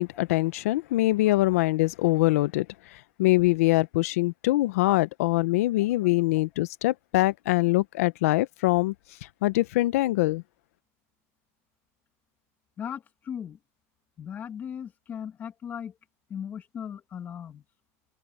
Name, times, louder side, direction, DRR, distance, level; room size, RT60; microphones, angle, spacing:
voice 1, 0.0-2.7 3.2-8.9 9.4-10.4, left 18 dB, 85° left, 0.7 m, -23 dB
voice 2, 12.8-13.6 14.2-15.9 16.3-17.6, left 8 dB, 25° left, 2.2 m, -37 dB
supercardioid pair, 165°, 8 cm